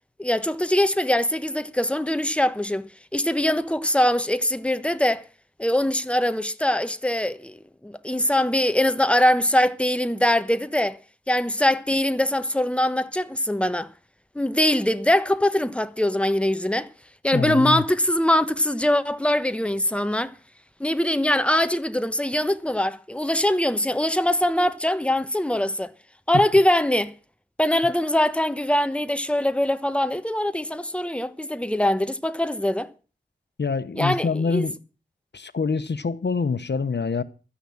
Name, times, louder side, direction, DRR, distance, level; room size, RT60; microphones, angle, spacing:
voice 1, 0.2-5.2 5.6-7.6 7.8-11.0 11.3-13.9 14.3-16.9 17.2-20.3 20.8-25.9 26.3-27.1 27.6-32.9 33.9-34.6, left 1 dB, 5° left, 1.2 m, -22 dB
voice 2, 17.3-17.8 26.3-26.4 33.6-34.8 35.3-37.2, left 4 dB, 85° left, 1.0 m, -25 dB
13.0 x 10.0 x 7.2 m
wide cardioid pair, 45°, 18 cm